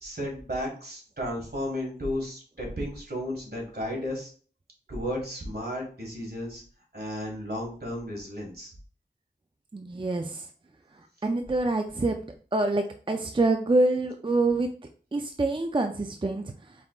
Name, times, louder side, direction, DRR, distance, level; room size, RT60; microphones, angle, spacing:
voice 1, 0.0-4.3 4.9-6.6 6.9-8.7, equal, 60° right, 0 dB, 1.6 m, -33 dB
voice 2, 9.7-10.5 11.2-12.2 12.5-14.7 15.1-16.5, right 2 dB, 30° right, 5 dB, 0.4 m, -26 dB
4.7 x 3.6 x 2.3 m, 0.42 s
wide cardioid pair, 45°, 18 cm